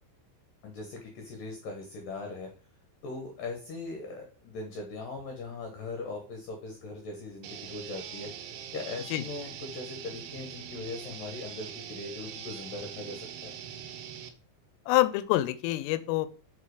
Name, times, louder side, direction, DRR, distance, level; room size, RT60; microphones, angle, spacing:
voice 1, 0.6-2.5 3.0-8.3 8.7-13.5, left 3 dB, 70° left, 3 dB, 2.1 m, -40 dB
sound 1, 7.4-14.3, right 9 dB, 80° right, 3.2 m, -42 dB
voice 2, 14.9-16.3, left 16 dB, 85° left, 13 dB, 3.2 m, -26 dB
7.5 x 4.4 x 4.9 m, 0.38 s
omnidirectional pair, 5.6 m